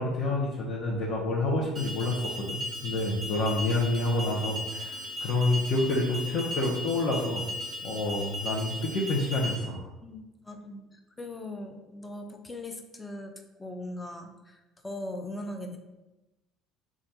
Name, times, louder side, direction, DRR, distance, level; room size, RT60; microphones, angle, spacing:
voice 1, 0.0-7.4 7.8-9.9, left 2 dB, 55° left, -4 dB, 0.7 m, -28 dB
Alarm, 1.8-9.6, left 1 dB, 15° right, 1.0 m, -37 dB
voice 2, 10.0-14.6 14.8-15.8, left 1 dB, 15° left, 4 dB, 0.5 m, -40 dB
3.2 x 2.4 x 4.1 m, 1.0 s
supercardioid pair, 80°, 0 cm